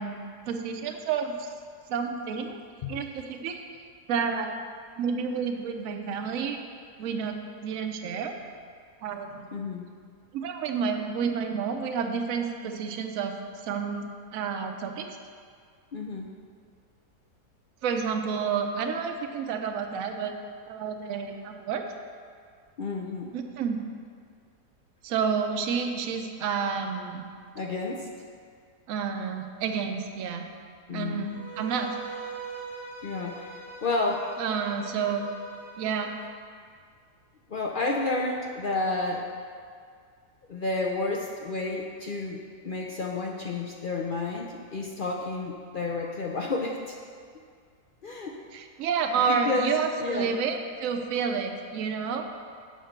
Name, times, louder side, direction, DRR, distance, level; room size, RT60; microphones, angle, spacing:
voice 1, 0.0-1.5 1.9-2.6 2.9-3.6 4.1-4.6 5.0-6.6 7.0-7.4 7.6-8.4 9.0-9.5 10.3-13.3 13.6-15.2 17.8-20.3 20.7-21.8 23.3-23.8 25.0-27.2 28.9-30.4 30.9-31.9 34.4-35.3 35.8-36.1 48.5-52.3, right 6 dB, 65° right, 4 dB, 1.0 m, -30 dB
voice 2, 9.5-9.9 15.9-16.3 22.8-23.3 27.5-28.3 30.9-31.3 33.0-34.3 37.5-39.3 40.5-47.0 48.0-48.4 49.2-50.3, left 3 dB, 60° left, -1 dB, 0.5 m, -31 dB
Bowed string instrument, 31.2-36.2, right 4 dB, 40° left, 1.2 m, -42 dB
8.0 x 5.6 x 6.6 m, 2.1 s
omnidirectional pair, 1.7 m